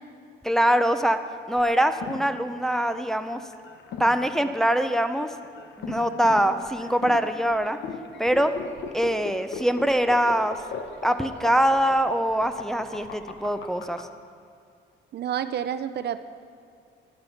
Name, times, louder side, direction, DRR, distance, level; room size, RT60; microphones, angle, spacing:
voice 1, 0.4-1.2 1.5-3.4 4.0-5.3 5.8-7.8 8.2-8.5 8.9-10.6 11.0-14.1, right 1 dB, ahead, 8 dB, 0.5 m, -23 dB
sound 1, 1.6-14.0, left 6 dB, 70° left, 0.9 m, -38 dB
voice 2, 15.1-16.2, right 9 dB, 55° right, 11 dB, 0.5 m, -29 dB
11.5 x 7.6 x 5.7 m, 2.4 s
cardioid pair, 90°, 20 cm